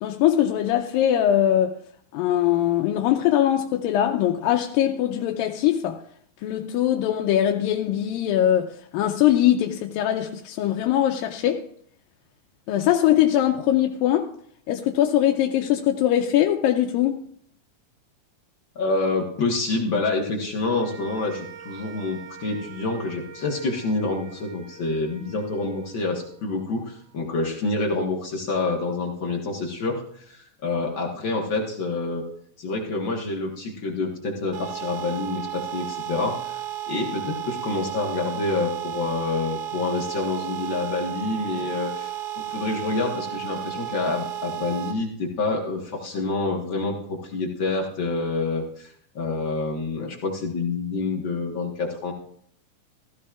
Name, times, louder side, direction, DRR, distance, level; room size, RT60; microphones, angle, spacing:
voice 1, 0.0-1.8 2.1-6.0 6.4-11.7 12.7-14.3 14.7-17.2, left 11 dB, 85° left, 2.4 m, -21 dB
voice 2, 18.7-32.2 32.6-52.1, left 3 dB, 50° left, 1.5 m, -27 dB
sound 1, 20.8-27.2, right 6 dB, 50° right, 1.6 m, -45 dB
sound 2, 34.5-44.9, right 12 dB, 75° right, 2.9 m, -33 dB
16.0 x 14.5 x 2.5 m
omnidirectional pair, 4.1 m